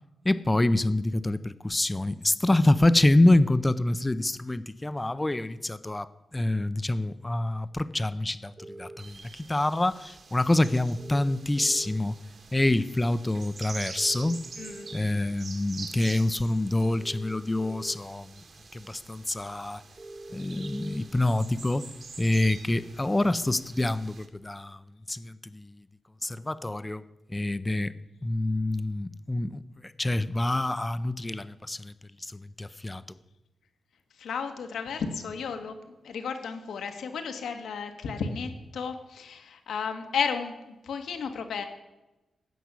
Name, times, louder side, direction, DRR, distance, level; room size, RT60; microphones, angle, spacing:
voice 1, 0.2-12.2 12.5-14.4 14.9-18.3 18.7-19.8 20.3-21.9 22.2-24.8 25.1-25.7 26.2-27.0 27.3-27.9 28.2-31.9 32.2-33.0, left 1 dB, 15° left, 15 dB, 0.5 m, -26 dB
sound 1, 8.6-9.0 11.0-12.0 14.0-15.0 17.0-18.0 20.0-21.0, right 2 dB, 30° right, 1.2 m, -44 dB
sound 2, 9.0-24.3, right 4 dB, 50° right, 1.6 m, -46 dB
voice 2, 34.2-41.7, left 6 dB, 85° left, 6 dB, 1.6 m, -33 dB
15.5 x 6.0 x 8.2 m, 1.0 s
wide cardioid pair, 135°, 0 cm